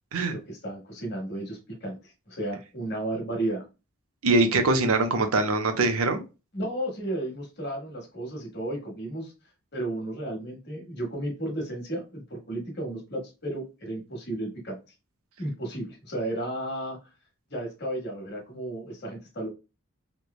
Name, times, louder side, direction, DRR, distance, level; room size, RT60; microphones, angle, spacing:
voice 1, 0.2-3.6 6.5-9.3 9.7-14.8 15.4-17.0 17.5-19.5, right 1 dB, 50° left, 1 dB, 1.1 m, -33 dB
voice 2, 4.2-6.2, right 2 dB, 85° right, 7 dB, 0.5 m, -23 dB
3.1 x 2.1 x 2.3 m, 0.29 s
head